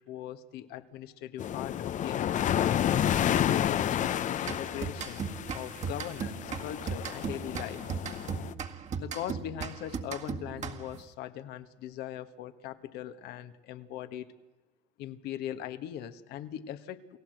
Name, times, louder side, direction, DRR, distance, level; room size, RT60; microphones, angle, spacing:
voice 1, 0.0-2.6 3.2-5.3 5.5-7.8 9.0-14.3 15.0-17.2, left 11 dB, 70° left, 10 dB, 1.6 m, -40 dB
sound 1, 1.4-8.5, left 10 dB, 45° left, 0.8 m, -30 dB
sound 2, 4.4-11.1, right 6 dB, 45° right, 2.0 m, -37 dB
29.0 x 17.0 x 7.9 m, 1.3 s
supercardioid pair, 90°, 17 cm